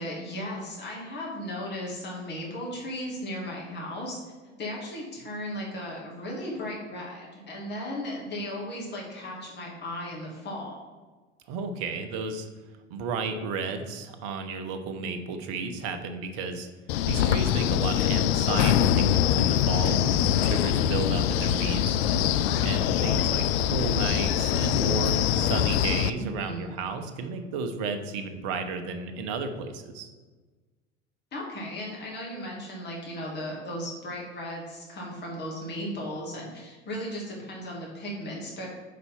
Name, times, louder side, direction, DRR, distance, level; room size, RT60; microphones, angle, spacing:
voice 1, 0.0-4.2 4.6-10.8 26.2-26.6 31.3-38.7, equal, 30° left, -3 dB, 2.1 m, -36 dB
voice 2, 11.5-12.5 12.9-16.7 17.1-22.0 22.6-30.1, right 4 dB, 55° right, 7 dB, 1.0 m, -33 dB
Wind, 16.9-26.1, left 10 dB, 60° left, 0.5 m, -24 dB
5.3 x 4.1 x 5.8 m, 1.3 s
hypercardioid pair, 80°, 35 cm